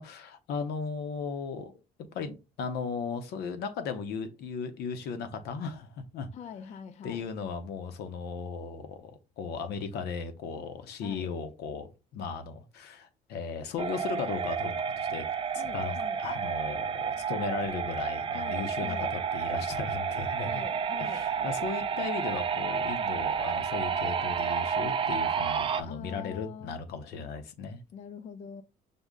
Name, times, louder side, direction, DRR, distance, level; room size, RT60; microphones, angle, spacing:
voice 1, 0.0-1.7 2.1-6.3 7.0-15.9 16.2-20.6 21.0-27.8, left 5 dB, 75° left, 0.7 m, -36 dB
voice 2, 6.3-7.3 11.0-11.3 15.5-16.2 18.3-19.1 20.4-21.3 25.9-26.8 27.9-28.6, left 7 dB, 45° left, 0.4 m, -44 dB
sound 1, 13.8-25.8, right 7 dB, 30° right, 0.4 m, -31 dB
5.2 x 2.1 x 3.6 m
cardioid pair, 110°, 17 cm